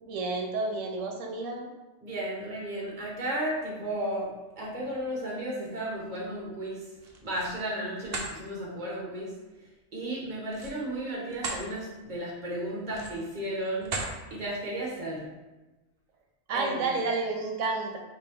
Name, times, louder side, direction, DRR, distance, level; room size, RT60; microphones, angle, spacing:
voice 1, 0.0-1.7 16.5-18.0, right 3 dB, 90° right, 1 dB, 1.0 m, -30 dB
voice 2, 2.0-4.3 4.6-6.8 7.2-9.3 9.9-13.9 14.3-15.3 16.5-16.9, right 1 dB, 40° right, -4 dB, 1.4 m, -34 dB
sound 1, 6.9-7.6 8.0-8.3 10.5-11.7 12.1-12.3 12.9-13.3 13.8-14.2, right 3 dB, 60° right, 0.9 m, -36 dB
5.1 x 3.0 x 3.5 m, 1.1 s
omnidirectional pair, 1.3 m